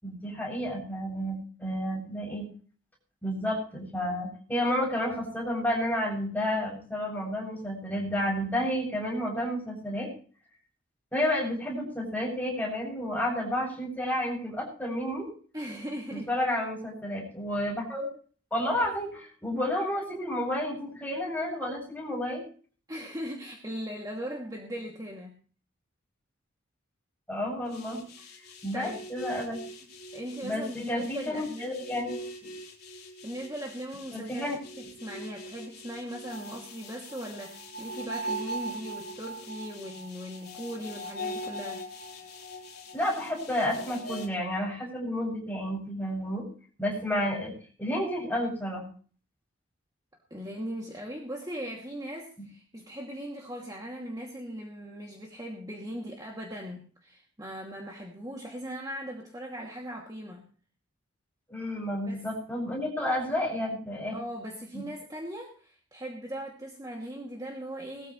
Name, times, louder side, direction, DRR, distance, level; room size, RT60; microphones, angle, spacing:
voice 1, 0.0-2.5 3.2-10.1 11.1-15.3 16.1-18.1 18.5-22.5 27.3-28.0 28.6-29.6 30.4-32.2 32.4-32.5 34.1-34.6 42.9-46.4 46.8-47.5 47.8-48.8 61.5-64.2 64.7-64.8, left 1 dB, 10° left, -1 dB, 7.5 m, -31 dB
voice 2, 15.5-16.3 22.9-25.3 28.2-28.3 28.7-29.0 30.1-31.8 33.2-34.4 34.8-41.8 50.3-60.4 62.1-62.2 64.1-68.1, equal, 20° right, -1 dB, 2.6 m, -39 dB
sound 1, 27.7-44.3, right 1 dB, 50° left, 4.0 m, -41 dB
21.0 x 14.5 x 3.2 m, 0.42 s
head